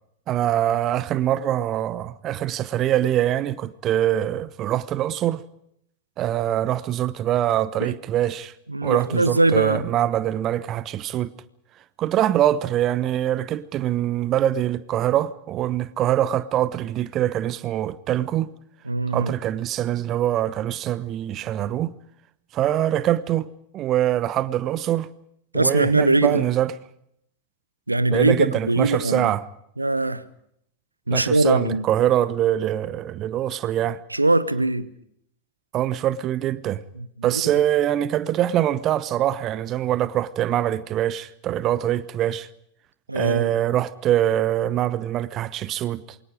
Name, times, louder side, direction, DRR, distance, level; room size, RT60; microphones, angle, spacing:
voice 1, 0.3-5.4 6.2-8.5 8.8-11.3 12.0-18.5 19.1-21.9 22.5-23.5 23.7-25.1 25.5-26.7 28.1-29.4 31.1-34.0 35.7-36.8 37.2-42.5 43.1-46.0, right 12 dB, 35° right, 1.0 m, -23 dB
voice 2, 8.7-9.8 18.9-19.3 25.5-26.4 27.9-29.3 29.8-30.2 31.1-31.8 34.1-34.9 37.0-37.1 37.3-37.4 43.1-43.5, right 2 dB, 85° right, 1.2 m, -21 dB
27.5 x 23.5 x 5.0 m
figure-of-eight pair, 90°, 0 cm